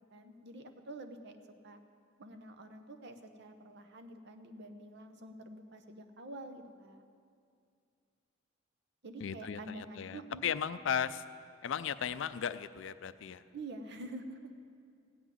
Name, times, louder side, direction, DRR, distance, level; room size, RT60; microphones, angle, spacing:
voice 1, 0.1-1.4 1.6-1.8 2.2-7.0 9.0-10.4 13.5-14.5, right 2 dB, 55° right, 7 dB, 0.9 m, -47 dB
voice 2, 9.2-11.2 11.6-13.4, left 8 dB, 65° left, 14 dB, 0.4 m, -36 dB
15.5 x 6.1 x 9.3 m, 2.3 s
head